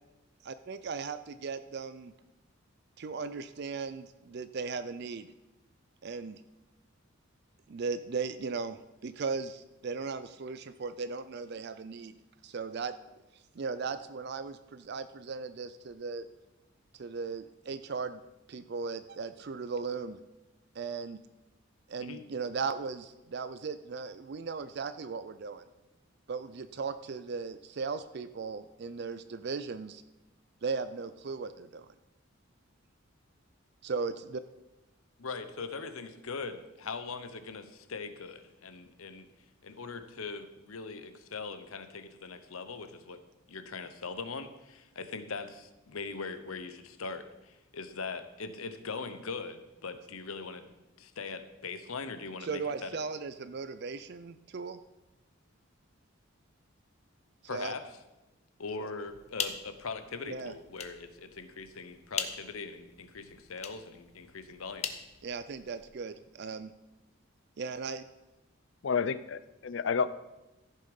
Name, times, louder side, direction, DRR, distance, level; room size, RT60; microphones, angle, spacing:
voice 1, 0.4-2.1 3.0-5.3 6.0-6.4 7.7-12.1 12.4-12.9 13.6-16.3 16.9-18.2 18.5-20.2 20.8-21.2 21.9-25.6 26.3-30.0 30.6-31.9 33.8-34.4 52.4-54.8 57.5-57.7 60.3-60.5 65.2-66.7 67.6-68.1, right 4 dB, 50° right, 12 dB, 0.4 m, -37 dB
voice 2, 35.2-39.3 39.6-43.2 43.5-50.7 51.0-53.0 57.5-57.8 58.6-64.9, left 4 dB, 85° left, 10 dB, 0.9 m, -41 dB
sound 1, 59.1-65.9, left 6 dB, 30° left, 0.8 m, -42 dB
voice 3, 68.8-70.1, left 6 dB, 60° left, 15 dB, 0.4 m, -30 dB
14.5 x 6.6 x 5.3 m, 1.0 s
head